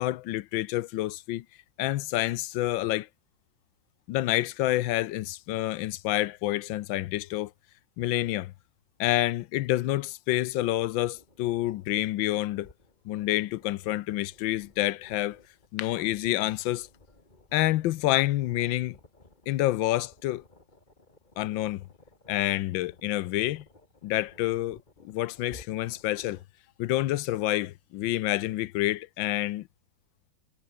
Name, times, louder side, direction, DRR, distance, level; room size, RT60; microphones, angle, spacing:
voice 1, 0.0-1.4 1.8-3.1 4.1-7.5 8.0-8.5 9.0-12.7 13.0-15.4 15.7-16.9 17.5-19.0 19.5-20.4 21.4-21.8 22.3-23.6 24.0-24.8 25.0-26.4 26.8-29.7, left 15 dB, 80° left, 1.4 m, -28 dB
sound 1, 11.1-26.4, left 2 dB, 20° left, 3.0 m, -57 dB
omnidirectional pair, 2.1 m